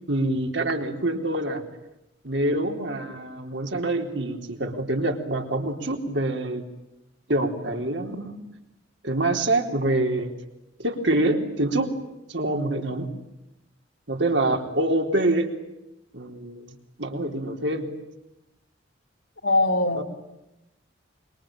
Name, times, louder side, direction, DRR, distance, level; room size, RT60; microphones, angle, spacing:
voice 1, 0.1-1.6 2.2-6.7 7.3-8.4 9.0-10.3 10.8-11.9 12.3-13.1 14.1-15.5 16.1-16.7 17.0-17.9 19.9-20.0, right 2 dB, 65° right, 4 dB, 3.9 m, -25 dB
voice 2, 19.4-20.0, left 2 dB, 80° left, 1 dB, 3.4 m, -21 dB
26.0 x 24.0 x 8.9 m, 0.91 s
head